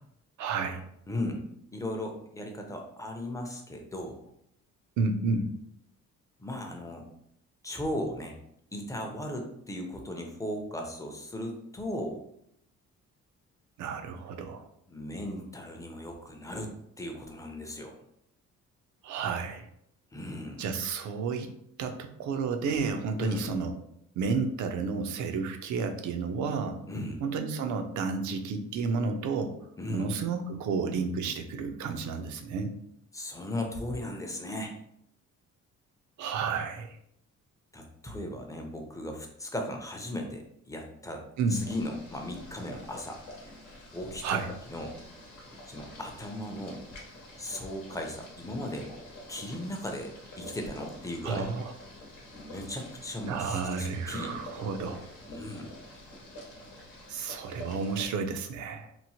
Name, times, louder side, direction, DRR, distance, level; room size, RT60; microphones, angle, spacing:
voice 1, 0.4-0.8 5.0-5.5 13.8-14.6 19.0-19.7 20.6-21.5 21.8-23.7 24.2-26.8 27.2-29.6 29.9-32.7 36.2-37.0 41.4-41.6 44.2-44.5 51.2-51.7 53.2-55.0 57.1-58.9, right 4 dB, 70° right, 6 dB, 0.5 m, -31 dB
voice 2, 1.1-1.4 1.7-4.2 6.4-7.0 7.6-8.3 8.7-12.2 14.9-18.0 20.1-20.7 23.2-23.5 26.9-27.2 29.8-30.1 33.1-34.7 37.7-41.2 41.5-43.2 43.9-44.4 44.7-45.0 45.7-46.8 47.4-48.9 49.3-51.5 52.3-54.3 55.3-55.7, left 1 dB, 10° left, 3 dB, 0.5 m, -37 dB
Boiling, 41.5-58.1, left 1 dB, 85° left, 1.0 m, -47 dB
3.0 x 2.0 x 2.7 m, 0.73 s
cardioid pair, 90°, 30 cm